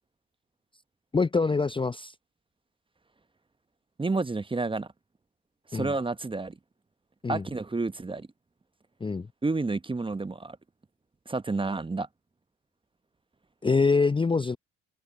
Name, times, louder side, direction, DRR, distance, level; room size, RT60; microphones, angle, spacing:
voice 1, 1.1-2.1 5.7-5.9 7.2-7.4 9.0-9.3 13.6-14.6, left 4 dB, 15° left, 0.7 m, -25 dB
voice 2, 4.0-4.9 5.7-6.6 7.3-8.3 9.4-10.6 11.3-12.1, right 3 dB, 15° right, 1.0 m, -30 dB
hypercardioid pair, 60°, 38 cm